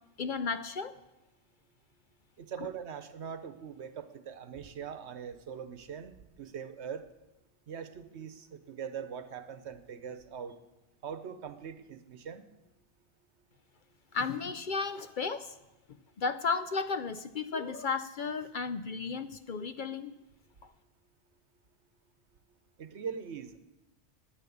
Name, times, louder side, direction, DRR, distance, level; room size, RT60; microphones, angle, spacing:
voice 1, 0.2-0.9 2.6-2.7 14.1-15.6 16.2-20.1, left 4 dB, 55° left, 11 dB, 0.6 m, -34 dB
voice 2, 2.4-7.1 7.7-10.6 11.0-12.4 22.8-23.6, right 7 dB, 75° right, 11 dB, 1.2 m, -42 dB
10.5 x 9.9 x 8.5 m, 0.98 s
omnidirectional pair, 1.2 m